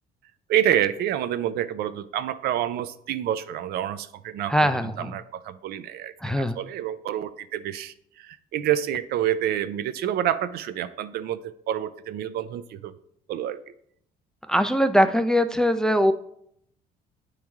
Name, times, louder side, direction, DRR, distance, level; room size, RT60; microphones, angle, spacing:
voice 1, 0.5-4.6 5.0-12.9 13.3-13.6, right 11 dB, 70° right, 13 dB, 0.4 m, -28 dB
voice 2, 4.5-5.1 6.2-6.6 14.5-16.1, equal, 5° left, 9 dB, 0.3 m, -21 dB
8.7 x 3.2 x 3.5 m, 0.71 s
cardioid pair, 110°, 17 cm